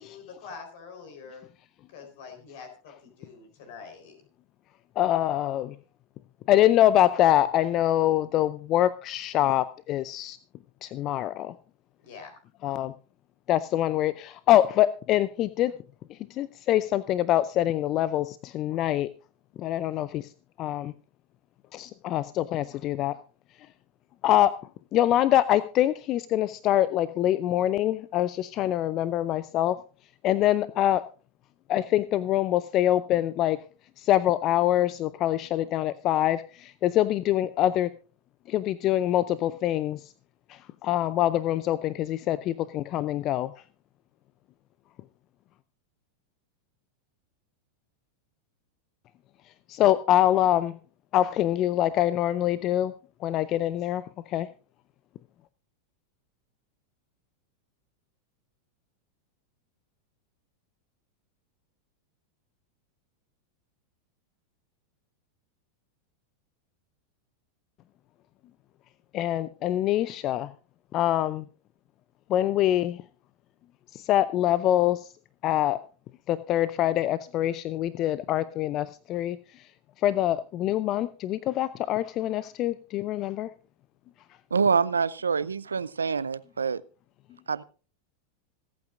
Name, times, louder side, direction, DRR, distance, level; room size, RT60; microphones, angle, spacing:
voice 1, 0.0-1.4 1.9-4.2 12.0-12.4, left 5 dB, 60° left, 4.0 m, -45 dB
voice 2, 5.0-5.8 6.5-10.4 10.8-11.6 12.6-12.9 13.5-15.7 16.1-19.1 19.6-20.3 20.6-20.9 21.7-23.2 23.6-23.7 24.2-24.6 24.9-29.8 30.2-31.0 31.7-33.6 34.0-37.9 38.5-40.1 40.5-43.5 49.7-50.8 51.1-52.9 53.2-54.5 69.1-70.5 70.9-71.4 72.3-73.0 73.9-75.1 75.4-75.8 76.3-79.7 80.0-83.5, left 13 dB, 40° left, 0.5 m, -25 dB
voice 3, 84.5-86.8 87.5-87.6, right 5 dB, 85° right, 0.5 m, -26 dB
26.0 x 8.7 x 2.5 m
figure-of-eight pair, 90°, 0 cm